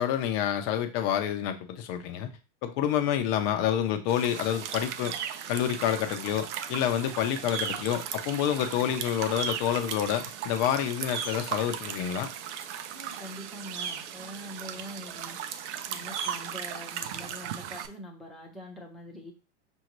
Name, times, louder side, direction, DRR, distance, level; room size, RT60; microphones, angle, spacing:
voice 1, 0.0-2.3 2.6-5.1 5.5-12.3, left 10 dB, 45° left, 8 dB, 0.7 m, -28 dB
sound 1, 4.1-17.9, right 8 dB, 70° right, 0.7 m, -37 dB
voice 2, 12.9-15.4 15.9-19.3, equal, ahead, -1 dB, 1.0 m, -44 dB
5.5 x 2.6 x 3.0 m, 0.30 s
supercardioid pair, 135°, 36 cm